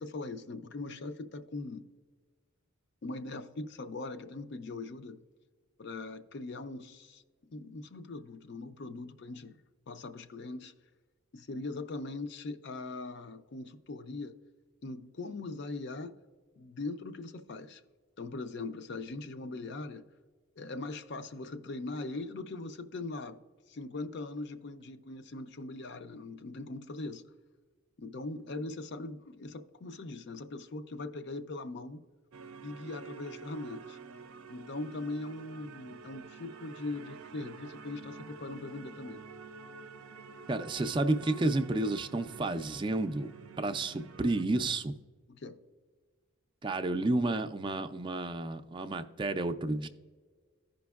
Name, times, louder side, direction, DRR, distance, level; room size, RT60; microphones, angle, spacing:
voice 1, 0.0-1.9 3.0-5.2 5.8-7.2 7.5-9.6 9.9-10.7 11.3-14.3 14.8-16.2 16.6-17.8 18.2-20.1 20.6-23.4 23.7-27.2 28.0-32.0 32.6-34.0 34.5-39.2 45.3-45.6, left 2 dB, 55° left, 9 dB, 0.5 m, -40 dB
sound 1, 32.3-44.4, right 5 dB, 85° right, 0.5 m, -48 dB
voice 2, 40.5-43.3 43.6-44.9 46.6-49.9, right 2 dB, 25° right, 8 dB, 0.4 m, -31 dB
15.0 x 5.2 x 2.3 m, 1.5 s
head